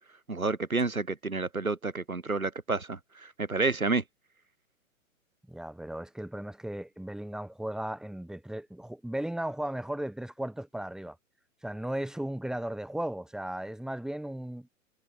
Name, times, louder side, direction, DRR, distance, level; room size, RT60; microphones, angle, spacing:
voice 1, 0.3-4.0, right 3 dB, 80° right, 6.3 m, -30 dB
voice 2, 5.5-11.2 11.6-14.7, right 1 dB, ahead, 3.4 m, -36 dB
figure-of-eight pair, 110°, 41 cm